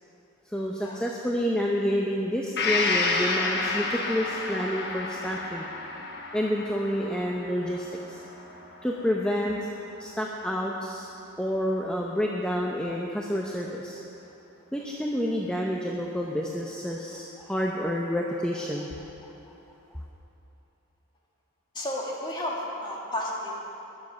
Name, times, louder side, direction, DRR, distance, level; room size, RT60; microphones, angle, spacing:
voice 1, 0.5-5.7 6.3-8.2 8.8-9.6 10.0-11.1 11.4-14.0 14.7-19.3, equal, 5° left, -2 dB, 0.7 m, -29 dB
Gong, 2.6-10.2 10.6-10.7, left 3 dB, 50° left, 1.2 m, -31 dB
voice 2, 21.7-23.6, left 1 dB, 20° left, -3 dB, 1.9 m, -32 dB
20.0 x 7.3 x 6.3 m, 2.9 s
head